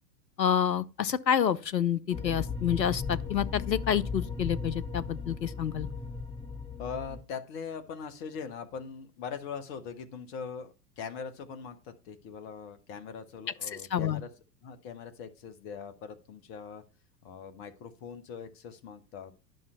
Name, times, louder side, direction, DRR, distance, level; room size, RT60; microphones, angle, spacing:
voice 1, 0.4-5.9 13.9-14.2, left 9 dB, 80° left, 0.7 m, -28 dB
sound 1, 2.1-7.2, left 4 dB, 5° left, 1.8 m, -36 dB
voice 2, 6.8-14.3 14.6-16.8 17.2-19.3, left 6 dB, 40° left, 1.5 m, -41 dB
10.5 x 5.7 x 5.6 m
figure-of-eight pair, 95°, 50 cm